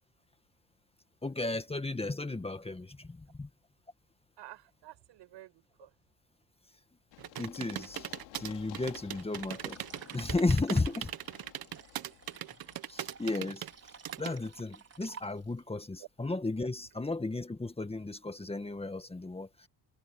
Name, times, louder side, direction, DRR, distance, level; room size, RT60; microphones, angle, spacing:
voice 1, 1.2-3.5 7.4-8.1 8.4-9.8 10.1-11.1 12.9-13.7 14.2-19.7, left 2 dB, 15° left, 1.8 m, -34 dB
voice 2, 4.4-5.9 11.8-12.2 16.0-16.1, right 15 dB, 70° right, 6.7 m, -52 dB
Run, 7.1-14.8, left 19 dB, 85° left, 2.7 m, -54 dB
sound 1, 7.2-14.3, right 12 dB, 50° right, 1.4 m, -40 dB
sound 2, 9.5-15.7, right 6 dB, 35° right, 5.0 m, -54 dB
cardioid pair, 95°, 45 cm